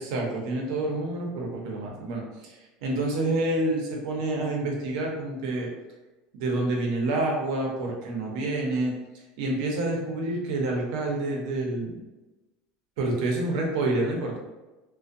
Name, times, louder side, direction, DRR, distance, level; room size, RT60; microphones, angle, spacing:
voice 1, 0.0-5.7 6.4-12.0 13.0-14.4, right 2 dB, 80° right, -1 dB, 0.6 m, -28 dB
2.5 x 2.1 x 2.5 m, 1.1 s
cardioid pair, 150°, 3 cm